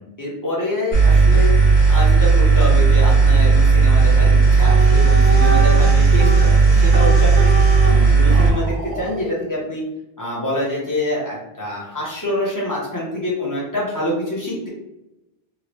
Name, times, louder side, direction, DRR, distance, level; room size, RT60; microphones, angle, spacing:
voice 1, 0.0-1.5 1.9-7.5 7.8-9.8 10.2-14.7, left 1 dB, 20° left, -5 dB, 0.9 m, -26 dB
sound 1, 0.9-8.5, right 4 dB, 45° left, 1.1 m, -13 dB
sound 2, 4.6-9.3, right 3 dB, 55° right, 0.7 m, -27 dB
2.9 x 2.4 x 3.0 m, 0.92 s
omnidirectional pair, 1.1 m